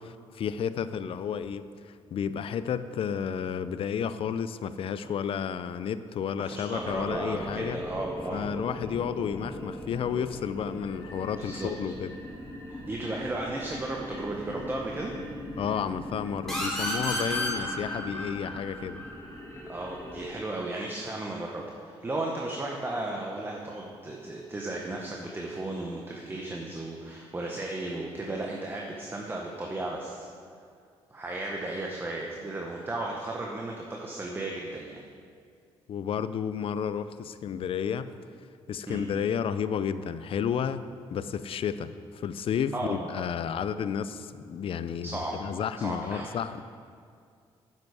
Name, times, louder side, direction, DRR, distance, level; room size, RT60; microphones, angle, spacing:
voice 1, 0.0-7.8 8.3-12.1 15.6-19.0 35.9-38.1 38.7-46.6, left 7 dB, 60° left, 13 dB, 0.4 m, -32 dB
voice 2, 6.4-8.4 11.4-11.7 12.7-15.1 19.7-30.3 31.1-35.0 38.9-39.0 42.7-43.3 45.0-45.4 45.8-46.3, right 2 dB, 20° right, -1 dB, 1.0 m, -35 dB
sound 1, 6.7-20.3, left 1 dB, 30° left, 2.1 m, -40 dB
sound 2, 16.5-19.9, left 1 dB, 5° left, 2.8 m, -33 dB
9.2 x 7.7 x 4.8 m, 2.3 s
cardioid pair, 90°, 11 cm